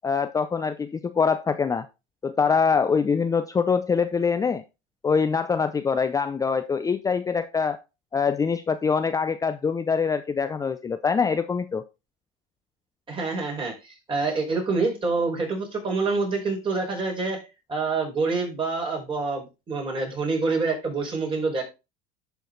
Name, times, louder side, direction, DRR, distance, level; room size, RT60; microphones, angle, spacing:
voice 1, 0.0-1.8 2.2-4.6 5.0-7.8 8.1-11.8, left 5 dB, 20° left, 10 dB, 0.5 m, -24 dB
voice 2, 13.1-17.4 17.7-21.6, right 3 dB, 30° right, -1 dB, 5.1 m, -27 dB
11.0 x 4.6 x 4.0 m, 0.27 s
supercardioid pair, 100°, 18 cm